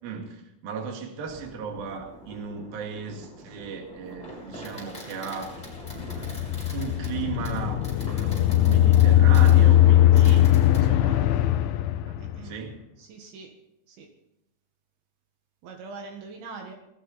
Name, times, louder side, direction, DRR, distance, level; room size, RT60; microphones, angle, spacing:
voice 1, 0.0-5.6 6.7-10.4 10.8-11.3 12.1-12.2 12.4-12.8, right 6 dB, 55° right, 2 dB, 3.6 m, -36 dB
Fireworks, 1.3-10.8, equal, 10° left, 6.5 m, -43 dB
sound 1, 5.6-12.6, left 12 dB, 80° left, 3.1 m, -20 dB
voice 2, 10.1-10.4 12.2-12.5 13.0-13.6 13.9-14.1 15.6-16.7, right 4 dB, 75° right, 3 dB, 3.8 m, -42 dB
18.5 x 14.5 x 4.1 m, 0.88 s
omnidirectional pair, 5.4 m